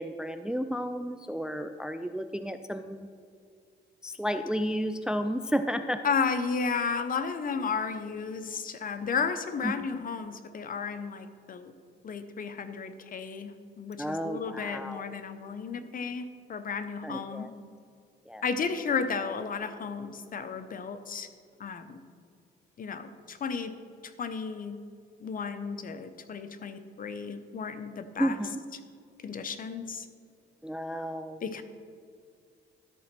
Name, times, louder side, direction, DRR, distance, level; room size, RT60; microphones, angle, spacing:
voice 1, 0.0-3.1 4.0-6.0 9.6-9.7 14.0-15.1 17.0-17.5 18.3-18.4 28.2-28.6 30.6-31.4, equal, 5° right, 9 dB, 0.3 m, -32 dB
voice 2, 6.0-11.7 12.0-17.5 18.4-21.3 21.6-22.0 22.8-23.7 24.0-24.8 25.2-28.4 29.2-30.1 31.4-31.6, left 5 dB, 45° left, 10 dB, 0.7 m, -33 dB
12.5 x 4.2 x 5.9 m, 2.2 s
cardioid pair, 90°, 20 cm